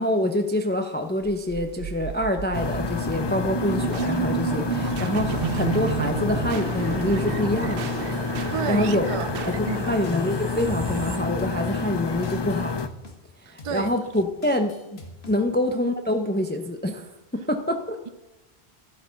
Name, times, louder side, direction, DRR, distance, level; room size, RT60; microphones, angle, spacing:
voice 1, 0.0-7.9 8.5-9.1 9.5-12.7 13.4-15.0 15.3-18.0, left 1 dB, 10° left, 0.6 m, -26 dB
sound 1, 1.2-12.3, right 9 dB, 65° right, 0.7 m, -32 dB
sound 2, 2.5-12.9, left 5 dB, 45° left, 0.3 m, -29 dB
sound 3, 7.0-8.8 9.2-11.0 11.4-13.2 13.6-15.4, left 1 dB, 75° left, 1.7 m, -45 dB
voice 2, 8.5-9.3 9.6-9.9 13.5-13.9 15.4-15.5, right 6 dB, 50° right, 0.4 m, -31 dB
12.0 x 7.7 x 5.7 m
omnidirectional pair, 1.1 m